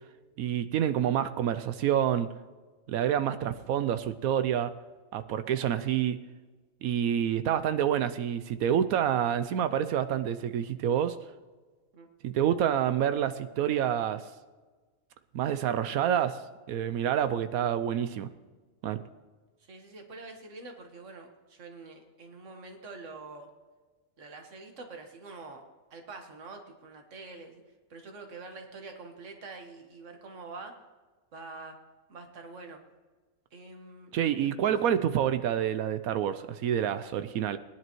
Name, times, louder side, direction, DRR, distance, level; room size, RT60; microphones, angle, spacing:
voice 1, 0.4-2.3 2.9-4.7 5.1-6.2 6.8-11.2 12.2-14.2 15.3-16.4 16.7-18.3 18.8-19.0 34.1-37.6, right 9 dB, 85° right, 12 dB, 1.0 m, -28 dB
voice 2, 19.6-23.5 24.2-25.6 25.9-27.6 27.9-30.8 31.3-31.8 32.1-32.8 33.5-34.7, right 3 dB, 60° right, 3 dB, 1.8 m, -46 dB
18.5 x 10.5 x 3.1 m, 1.3 s
omnidirectional pair, 1.5 m